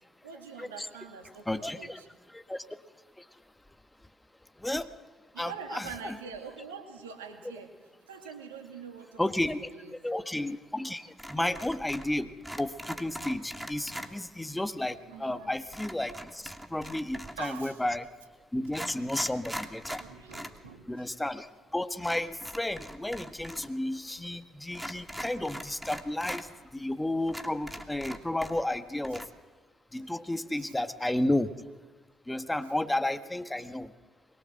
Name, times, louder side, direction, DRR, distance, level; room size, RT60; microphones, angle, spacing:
voice 1, 0.2-2.1 5.3-7.7 8.1-9.9 15.0-15.5 17.3-17.8 19.9-21.0 30.6-30.7, right 6 dB, 80° right, 4 dB, 2.5 m, -44 dB
voice 2, 1.5-2.0 2.3-2.6 4.6-4.9 5.4-6.1 9.2-9.7 10.0-12.3 12.6-16.4 16.7-18.1 18.5-20.0 20.9-26.5 26.7-29.2 29.9-31.5 32.3-33.9, left 1 dB, 10° left, 9 dB, 1.6 m, -32 dB
sound 1, 11.2-12.1 12.4-14.1 15.7-17.5 18.2-18.3 18.6-20.6 20.9-21.0 22.0-23.7 23.9-24.0 24.7-26.4 26.9-27.0 27.3-28.8 29.0-29.2, equal, 5° right, 2.7 m, -41 dB
23.0 x 22.5 x 7.8 m, 1.3 s
figure-of-eight pair, 45°, 0 cm